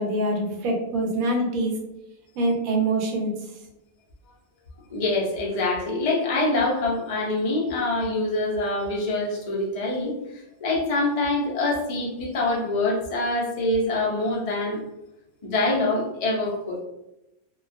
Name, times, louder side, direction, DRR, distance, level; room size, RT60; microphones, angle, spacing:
voice 1, 0.0-1.7 2.4-3.3, right 1 dB, 85° right, 2 dB, 1.0 m, -24 dB
voice 2, 4.9-14.8 15.4-16.8, left 2 dB, 65° left, -3 dB, 0.3 m, -25 dB
2.3 x 2.2 x 2.4 m, 0.92 s
omnidirectional pair, 1.4 m